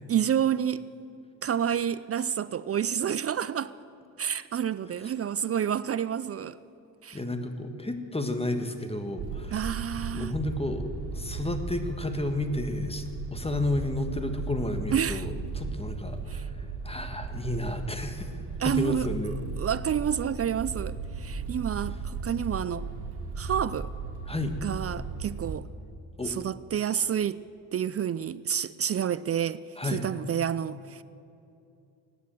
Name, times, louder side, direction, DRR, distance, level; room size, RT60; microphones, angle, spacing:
voice 1, 0.1-0.8 1.4-3.7 4.2-6.6 7.0-7.2 9.5-10.3 14.9-15.3 16.3-16.4 18.6-19.1 19.6-22.9 23.4-23.9 24.6-25.7 26.2-27.4 27.7-31.0, right 9 dB, 35° right, 0.4 m, -29 dB
voice 2, 7.1-9.7 10.1-19.4 24.3-24.6 26.2-26.3 29.8-30.0, left 1 dB, 15° left, 1.7 m, -32 dB
sound 1, 9.2-25.6, right 4 dB, 60° right, 2.3 m, -36 dB
17.0 x 9.7 x 7.8 m
supercardioid pair, 60°, 44 cm